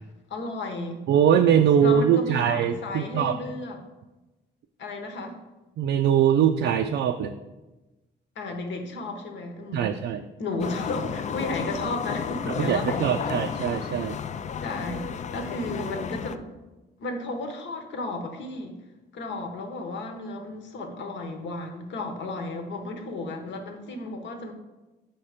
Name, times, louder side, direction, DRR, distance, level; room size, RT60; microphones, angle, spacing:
voice 1, 0.3-1.1 1.8-3.8 4.8-5.4 8.4-10.0 10.4-13.4 14.6-16.4 17.0-18.8 19.1-24.5, left 2 dB, 65° left, 4 dB, 1.1 m, -33 dB
voice 2, 1.1-3.4 5.8-7.3 9.7-10.2 12.6-14.2, right 8 dB, 65° right, 5 dB, 0.4 m, -22 dB
sound 1, 10.6-16.4, left 7 dB, 35° left, 0.4 m, -32 dB
5.8 x 4.3 x 5.0 m, 1.1 s
cardioid pair, 90°, 20 cm